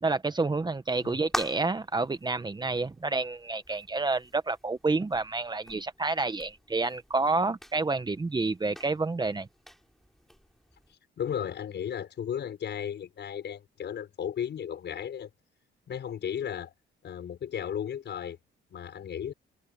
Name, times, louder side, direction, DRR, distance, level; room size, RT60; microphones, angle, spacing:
voice 1, 0.0-9.5, right 3 dB, 20° right, 1.2 m, -29 dB
sound 1, 0.8-10.9, equal, ahead, 6.8 m, -45 dB
voice 2, 11.2-15.3 15.9-16.7 17.0-18.4 18.7-19.3, left 9 dB, 60° left, 5.9 m, -35 dB
cardioid pair, 90°, 20 cm